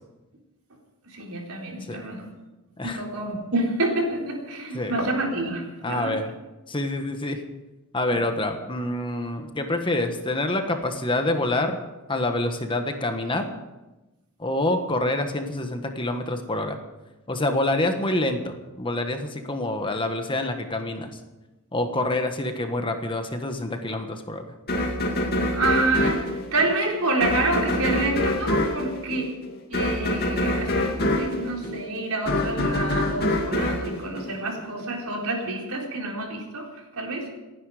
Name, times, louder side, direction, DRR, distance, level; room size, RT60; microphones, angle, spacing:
voice 1, 1.0-2.3 2.8-6.2 8.1-8.2 25.5-29.2 29.7-36.7 36.9-37.3, right 2 dB, 75° right, 0 dB, 4.2 m, -28 dB
voice 2, 5.8-6.3 6.7-7.4 7.9-11.8 12.1-13.5 14.4-16.8 17.3-21.1 21.7-24.5, left 1 dB, 25° left, 5 dB, 1.4 m, -26 dB
sound 1, 24.7-34.9, left 1 dB, 45° left, 2.3 m, -26 dB
29.0 x 10.0 x 5.0 m, 1.1 s
head